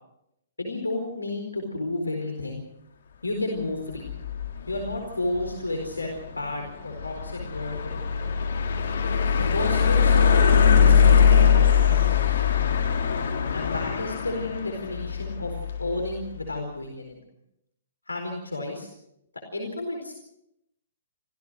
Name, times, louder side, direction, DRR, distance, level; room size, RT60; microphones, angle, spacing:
voice 1, 0.6-2.6 3.2-4.0 4.7-6.1 6.4-8.3 9.4-12.8 13.5-15.5 15.8-17.2 18.1-18.9 19.5-20.1, left 2 dB, 85° left, 2 dB, 4.4 m, -32 dB
sound 1, 3.9-16.1, left 7 dB, 60° left, 3.7 m, -22 dB
25.5 x 16.5 x 6.4 m, 0.81 s
figure-of-eight pair, 120°, 0 cm